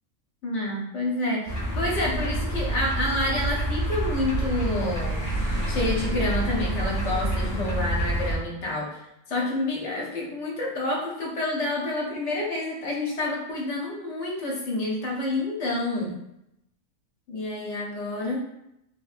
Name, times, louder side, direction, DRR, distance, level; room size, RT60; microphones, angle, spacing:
voice 1, 0.4-5.3 5.7-9.0 9.3-16.2 17.3-18.4, left 2 dB, 70° left, -3 dB, 0.9 m, -28 dB
sound 1, 1.5-8.3, right 1 dB, 20° left, 0.5 m, -27 dB
2.8 x 2.1 x 2.4 m, 0.82 s
omnidirectional pair, 1.3 m